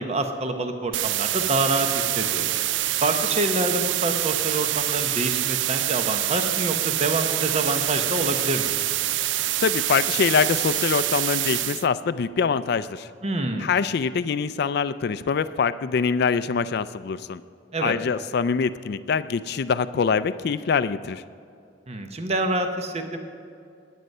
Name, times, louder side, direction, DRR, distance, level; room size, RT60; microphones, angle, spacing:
voice 1, 0.0-2.5 3.0-8.8 13.2-13.7 17.7-17.9 21.9-23.2, right 2 dB, 35° right, 6 dB, 0.9 m, -26 dB
sound 1, 0.9-11.9, right 14 dB, 75° right, 0.4 m, -26 dB
voice 2, 9.6-13.1 13.6-17.4 17.8-21.2, left 6 dB, 60° left, 12 dB, 0.4 m, -24 dB
19.0 x 9.3 x 5.4 m, 2.4 s
head